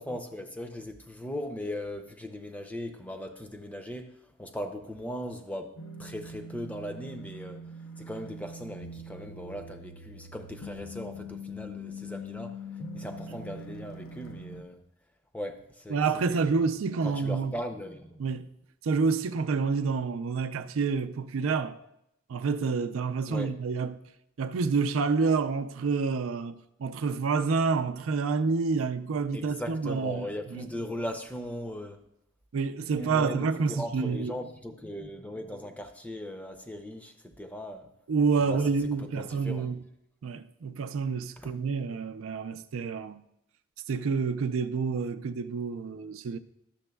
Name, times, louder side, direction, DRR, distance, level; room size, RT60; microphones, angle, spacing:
voice 1, 0.0-7.7 8.0-12.6 12.9-14.8 15.3-16.7 17.0-18.2 23.3-23.5 29.3-32.0 32.9-37.9 38.4-38.7 39.0-39.7 41.4-41.5, left 1 dB, 5° left, 0.5 m, -39 dB
sound 1, 5.8-14.6, left 1 dB, 85° left, 0.6 m, -43 dB
voice 2, 15.9-17.5 18.2-18.5 18.8-21.8 22.3-24.0 24.4-30.7 32.5-34.3 38.1-39.8 40.2-43.2 43.9-46.4, right 4 dB, 90° right, 0.4 m, -28 dB
11.5 x 6.9 x 2.2 m
head